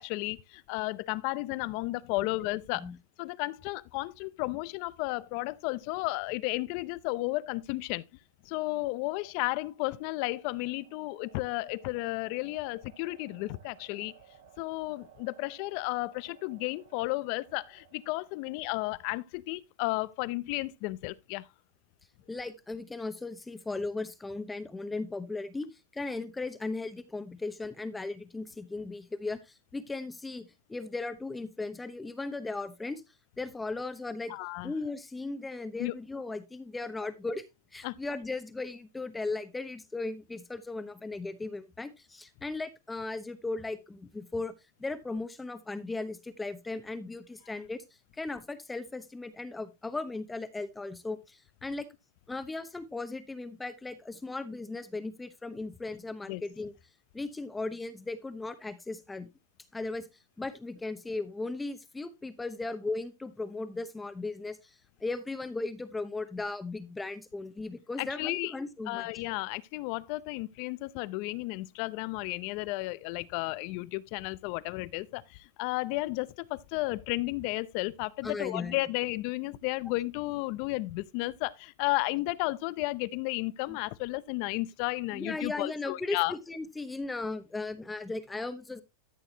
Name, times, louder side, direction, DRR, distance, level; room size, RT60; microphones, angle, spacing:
voice 1, 0.0-2.9 3.2-8.0 8.4-14.1 14.6-21.5 34.3-34.7 35.8-35.9 37.8-38.0 56.3-56.4 68.0-68.5 68.9-86.3, left 21 dB, 50° left, 0.6 m, -33 dB
sound 1, 8.4-19.3, right 12 dB, 70° right, 6.9 m, -60 dB
voice 2, 22.3-25.7 25.9-33.0 33.4-34.3 34.6-37.4 37.7-44.5 44.8-47.8 48.1-51.9 52.3-56.7 57.1-59.3 59.7-60.1 60.4-69.1 78.2-78.8 83.7-83.8 85.1-88.8, left 3 dB, 10° left, 1.0 m, -37 dB
13.0 x 6.5 x 2.8 m
supercardioid pair, 140°, 0 cm